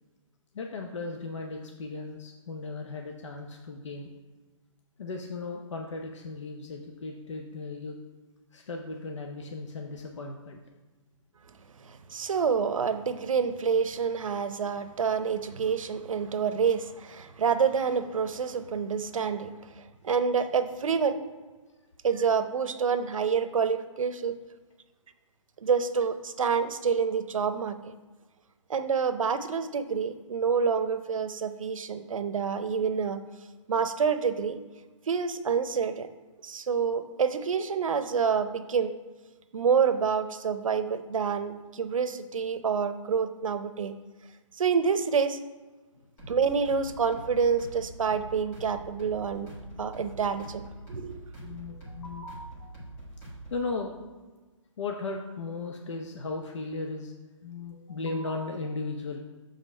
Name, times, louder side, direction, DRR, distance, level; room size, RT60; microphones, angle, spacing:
voice 1, 0.5-4.1 5.0-8.0 8.5-10.6 51.4-52.7 53.5-54.0 54.8-57.1 57.4-59.2, left 3 dB, 65° left, 2 dB, 0.8 m, -36 dB
voice 2, 11.9-21.2 22.0-24.4 25.6-27.9 28.7-33.2 33.7-34.6 35.1-36.1 36.4-38.9 39.5-43.9 44.6-45.4 46.3-49.5 49.8-51.2, right 6 dB, 90° right, 10 dB, 0.7 m, -27 dB
sound 1, 46.2-53.7, right 1 dB, 10° left, 1.3 m, -44 dB
7.3 x 3.8 x 5.5 m, 1.3 s
hypercardioid pair, 180°, 17 cm